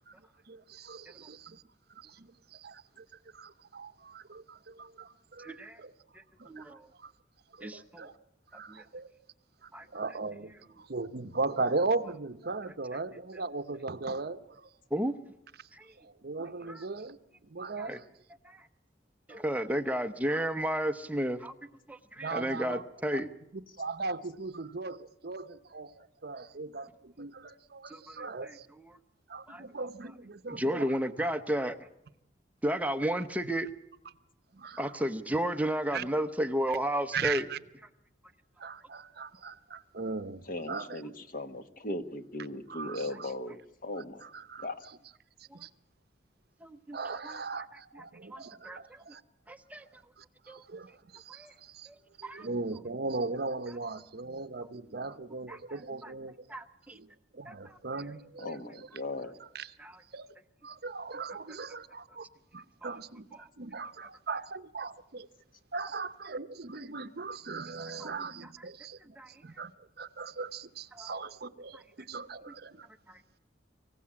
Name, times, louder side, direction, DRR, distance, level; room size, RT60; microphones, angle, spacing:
voice 1, 0.5-1.6 1.9-3.1 3.3-5.9 6.4-7.1 7.5-8.1 8.5-9.1 9.6-14.7 15.6-15.7 16.0-18.1 19.3-19.7 22.2-22.8 23.1-23.2 23.8-28.7 29.3-31.3 34.5-35.1 35.9-36.0 36.7-36.8 37.1-37.6 38.6-41.0 42.7-43.3 44.0-45.0 45.4-45.7 46.9-49.2 50.2-51.9 52.2-56.5 56.9-58.9 59.4-59.7 60.1-60.3 60.6-62.3 62.5-65.3 65.7-69.7 70.0-72.9, right 3 dB, 60° right, 0.8 m, -39 dB
voice 2, 5.4-5.8 6.5-6.9 7.6-8.1 8.7-8.8 9.7-9.9 14.9-15.2 15.7-15.9 16.7-16.8 17.8-18.0 18.4-18.6 19.3-21.5 21.9-23.3 27.9-28.2 29.5-29.6 30.5-31.8 32.6-33.7 34.8-37.5 46.6-47.0 47.2-47.6 48.3-49.2 49.5-49.8 50.5-50.6 51.3-51.5 51.9-52.0 52.2-52.5 55.5-55.6 56.0-56.1 56.5-57.0 57.5-57.6 59.8-59.9 63.4-63.5 68.0-68.1 69.2-69.3 70.9-71.1 73.1-73.2, equal, 10° right, 0.8 m, -33 dB
voice 3, 40.5-44.3 44.6-44.9 58.4-59.3, left 1 dB, 50° left, 1.4 m, -38 dB
25.0 x 16.0 x 8.7 m
head